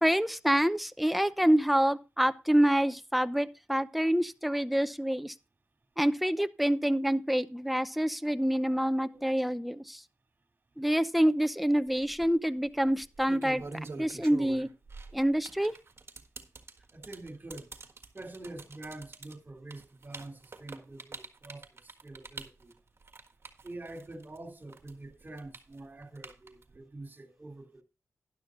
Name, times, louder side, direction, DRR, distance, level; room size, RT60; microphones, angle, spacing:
voice 1, 0.0-5.3 6.0-10.0 10.8-13.6 14.0-14.7 15.1-15.7, equal, ahead, 0.7 m, -27 dB
sound 1, 11.9-12.3 13.0-24.4 24.7-26.8, right 3 dB, 55° right, 1.6 m, -45 dB
voice 2, 16.9-17.7 18.1-22.7 23.6-27.8, right 2 dB, 40° right, 2.7 m, -46 dB
12.0 x 11.0 x 2.5 m
cardioid pair, 55°, 5 cm